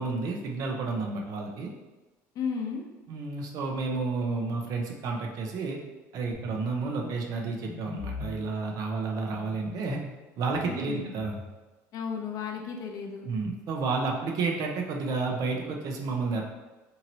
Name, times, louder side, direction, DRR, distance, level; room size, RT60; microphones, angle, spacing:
voice 1, 0.0-1.7 3.1-5.8 6.1-10.0 10.4-11.4 13.3-16.4, right 4 dB, 55° right, 1 dB, 0.6 m, -31 dB
voice 2, 2.3-2.8 10.6-11.0 11.9-13.3, left 6 dB, 55° left, 2 dB, 0.6 m, -34 dB
sound 1, 6.3-6.6 7.0-7.2 7.7-8.4 9.3-10.1 10.5-11.5, left 3 dB, 10° left, 1.0 m, -40 dB
2.9 x 2.8 x 2.6 m, 1.1 s
supercardioid pair, 105°, 7 cm